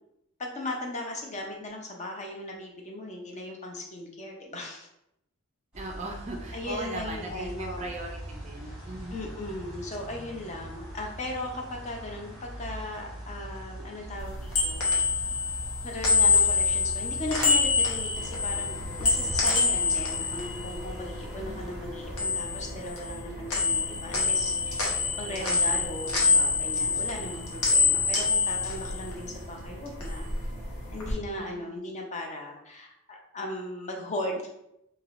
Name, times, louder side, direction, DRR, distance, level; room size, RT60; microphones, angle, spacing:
voice 1, 0.4-4.9 6.5-7.9 9.1-14.9 15.8-30.3 30.9-34.4, left 1 dB, 30° left, 1 dB, 0.5 m, -37 dB
sound 1, 5.7-22.2, right 1 dB, 5° right, 1.4 m, -42 dB
voice 2, 5.7-9.2 21.4-21.6 25.4-25.8 31.4-31.6, right 2 dB, 30° right, 2 dB, 0.4 m, -39 dB
sound 2, 14.2-21.5 21.8-23.2 23.5-29.5 29.8-31.1, left 4 dB, 90° left, 0.9 m, -26 dB
sound 3, 18.1-31.2, equal, 50° left, 1.1 m, -43 dB
3.3 x 2.7 x 2.5 m, 0.81 s
head